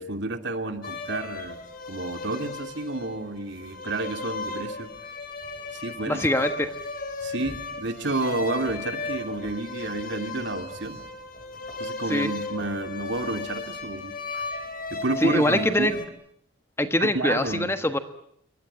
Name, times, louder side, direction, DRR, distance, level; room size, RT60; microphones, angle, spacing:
voice 1, 0.0-1.6 1.9-4.9 5.7-6.3 7.2-11.0 11.8-14.1 14.9-16.0 17.0-17.7, right 2 dB, 55° right, 6 dB, 2.6 m, -30 dB
sound 1, 0.8-16.1, left 3 dB, 40° left, 3.5 m, -36 dB
voice 2, 6.1-6.7 12.1-12.3 15.2-15.9 16.8-18.0, left 1 dB, 10° left, 8 dB, 1.2 m, -23 dB
28.0 x 24.0 x 8.8 m, 0.70 s
head